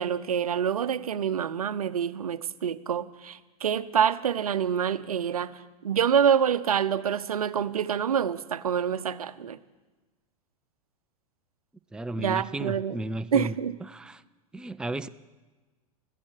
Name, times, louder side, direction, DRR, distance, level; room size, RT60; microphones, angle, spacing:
voice 1, 0.0-9.6 12.2-13.0 13.3-13.8, right 8 dB, 90° right, 0.7 m, -26 dB
voice 2, 11.9-14.2 14.5-15.1, right 1 dB, 5° right, 0.4 m, -34 dB
15.0 x 14.0 x 6.5 m
hypercardioid pair, 100°, 18 cm